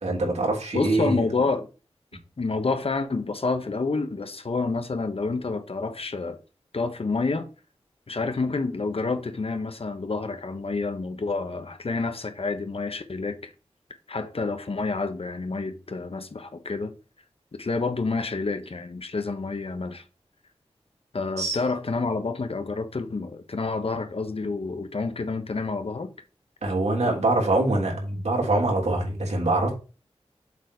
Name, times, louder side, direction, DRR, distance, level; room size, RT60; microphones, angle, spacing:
voice 1, 0.0-1.3 21.4-21.6 26.6-29.7, right 2 dB, 80° right, 3.2 m, -24 dB
voice 2, 0.7-1.7 2.4-6.4 6.7-7.5 8.1-13.5 14.1-16.9 17.5-20.0 21.1-26.1, left 3 dB, 60° left, 1.1 m, -28 dB
7.3 x 4.2 x 4.7 m
wide cardioid pair, 65°, 11 cm